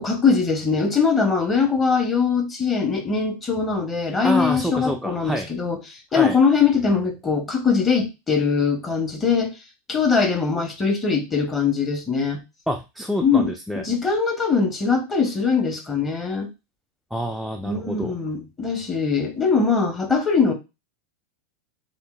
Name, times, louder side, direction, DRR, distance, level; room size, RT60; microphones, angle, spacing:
voice 1, 0.0-9.5 9.9-12.4 13.2-16.5 17.6-20.5, left 5 dB, 15° left, 3 dB, 0.9 m, -21 dB
voice 2, 4.2-5.5 6.1-6.4 12.7-13.8 17.1-18.1, equal, ahead, 4 dB, 0.3 m, -27 dB
3.7 x 2.8 x 2.2 m, 0.25 s
figure-of-eight pair, 90°, 0 cm